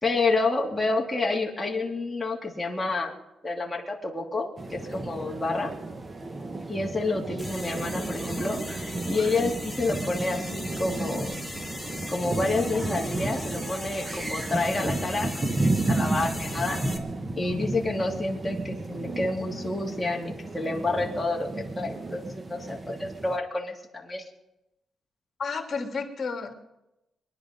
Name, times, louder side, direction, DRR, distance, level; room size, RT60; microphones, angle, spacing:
voice 1, 0.0-3.1 3.4-5.7 6.7-11.4 12.1-16.8 17.4-21.5 21.8-24.2, left 3 dB, 10° left, -2 dB, 2.9 m, -29 dB
sound 1, 4.6-23.4, right 2 dB, 25° right, 1.0 m, -33 dB
sound 2, 7.4-17.0, left 1 dB, 5° right, 2.6 m, -39 dB
voice 2, 25.4-26.5, left 4 dB, 45° left, 2 dB, 2.9 m, -31 dB
23.0 x 11.0 x 5.4 m, 0.91 s
cardioid pair, 115°, 0 cm